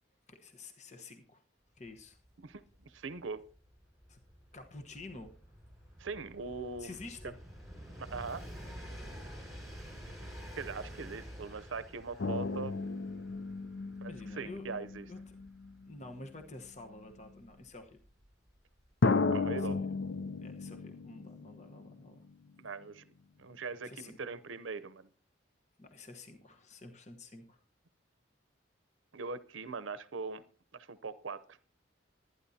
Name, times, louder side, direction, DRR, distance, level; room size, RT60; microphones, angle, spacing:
voice 1, 0.3-1.4 1.8-2.2 4.1-4.2 4.5-5.3 6.8-7.3 14.1-14.7 15.1-15.2 15.8-18.0 19.6-19.9 20.4-22.3 23.8-24.3 25.8-27.6, left 2 dB, 35° left, 5 dB, 1.1 m, -49 dB
Train, 1.9-2.0 2.2-18.8 19.8-19.9, equal, ahead, 5.7 m, -50 dB
voice 2, 2.4-3.4 6.0-7.0 8.0-8.4 10.5-12.7 14.0-15.1 19.3-19.8 22.6-23.0 23.4-25.1 29.1-30.4 30.7-31.6, right 4 dB, 80° right, 15 dB, 0.7 m, -41 dB
sound 1, 12.2-16.1 17.0-17.1 19.0-22.3 22.6-22.7, left 3 dB, 65° left, 0.5 m, -34 dB
25.5 x 9.8 x 2.8 m, 0.41 s
head